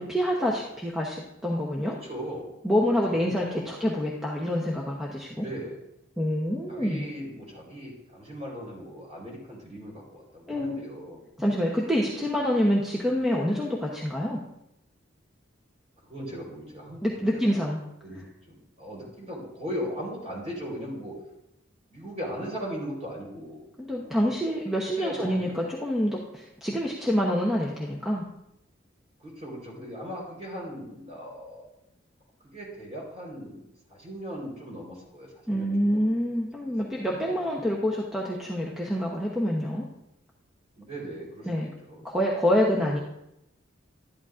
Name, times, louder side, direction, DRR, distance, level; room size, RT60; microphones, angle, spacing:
voice 1, 0.0-1.9 2.6-5.4 6.2-7.1 10.5-10.8 11.4-14.4 17.0-17.8 23.8-28.2 35.5-39.8 41.5-41.7 42.0-43.0, equal, ahead, -3 dB, 0.8 m, -26 dB
voice 2, 1.8-2.6 2.8-3.8 5.3-5.8 6.7-11.2 16.0-17.5 18.0-21.1 21.9-23.7 24.0-24.1 25.0-25.5 29.2-31.7 32.5-36.1 37.0-37.5 40.8-42.0, equal, 35° right, -3 dB, 4.1 m, -38 dB
12.0 x 11.0 x 2.5 m, 0.85 s
head